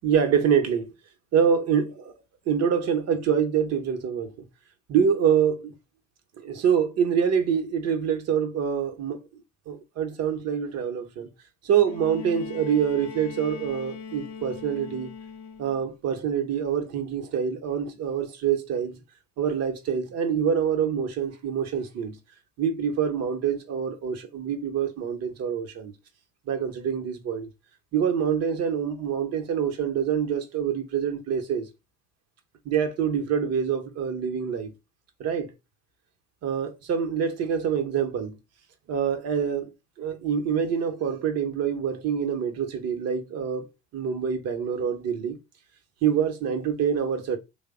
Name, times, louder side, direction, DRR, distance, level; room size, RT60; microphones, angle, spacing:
voice 1, 0.0-0.9 1.3-2.1 2.5-4.3 4.9-5.7 6.4-11.3 11.6-15.1 15.6-19.0 19.4-22.2 22.6-25.9 26.5-27.5 27.9-31.7 32.6-34.7 35.2-35.5 36.4-38.4 38.9-39.7 40.0-43.7 43.9-45.4 46.0-47.4, right 7 dB, 50° right, 0.8 m, -26 dB
Bowed string instrument, 11.9-15.9 17.1-17.2, left 6 dB, 55° left, 0.7 m, -40 dB
3.2 x 2.0 x 3.5 m
hypercardioid pair, 60°, 34 cm